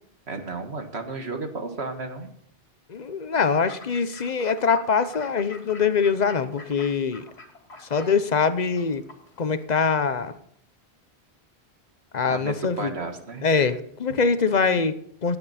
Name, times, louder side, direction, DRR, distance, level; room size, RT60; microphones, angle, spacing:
voice 1, 0.3-2.3 12.3-13.7, right 3 dB, 85° right, 5 dB, 2.0 m, -33 dB
voice 2, 2.9-7.2 7.8-9.0 9.4-10.3 12.1-12.9 13.4-15.4, left 5 dB, 45° left, 12 dB, 0.9 m, -23 dB
Fowl / Bird, 3.4-9.6, left 2 dB, 90° left, 2.6 m, -47 dB
16.5 x 9.9 x 4.3 m, 0.69 s
omnidirectional pair, 1.1 m